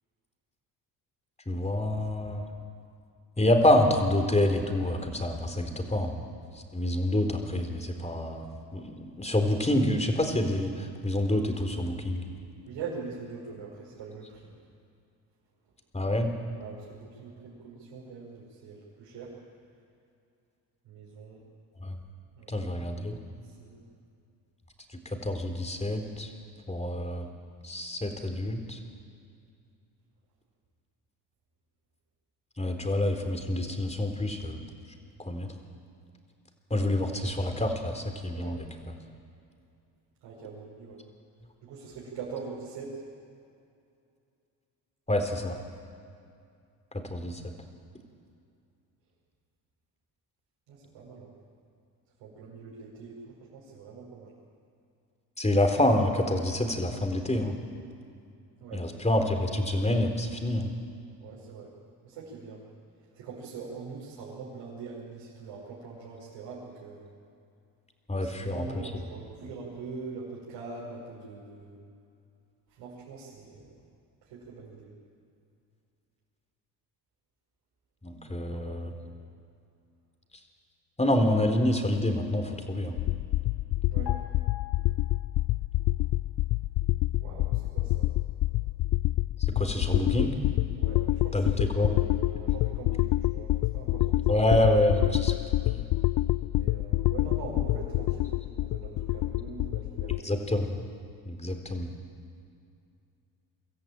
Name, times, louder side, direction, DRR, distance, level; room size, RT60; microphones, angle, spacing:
voice 1, 1.5-2.4 3.4-6.1 6.7-12.2 15.9-16.3 21.8-21.9 22.5-23.2 25.1-26.3 26.7-27.3 27.6-28.8 32.6-34.6 35.3-35.5 36.7-38.7 45.1-45.6 46.9-47.4 55.4-57.5 58.7-60.7 68.1-68.7 78.0-78.9 81.0-83.0 89.6-90.4 91.3-91.9 94.3-95.3 95.6-95.8 100.2-100.7 101.3-101.9, left 1 dB, 15° left, 5 dB, 3.9 m, -27 dB
voice 2, 12.6-14.6 16.6-19.3 20.8-21.4 22.4-22.6 23.4-23.8 38.3-38.6 40.2-41.0 41.6-43.0 50.7-51.4 52.2-54.3 58.6-58.8 61.2-61.7 62.0-62.6 63.1-67.1 68.2-71.8 72.7-73.8 74.2-74.9 78.2-79.1 83.9-84.1 87.2-88.1 90.7-94.4 96.5-100.5, right 4 dB, 75° right, -6 dB, 6.0 m, -43 dB
sound 1, 83.0-100.2, left 16 dB, 55° left, 0.5 m, -27 dB
sound 2, 84.1-85.7 86.0-86.2, left 11 dB, 75° left, 2.6 m, -44 dB
24.5 x 14.0 x 9.0 m, 2.5 s
supercardioid pair, 65°, 43 cm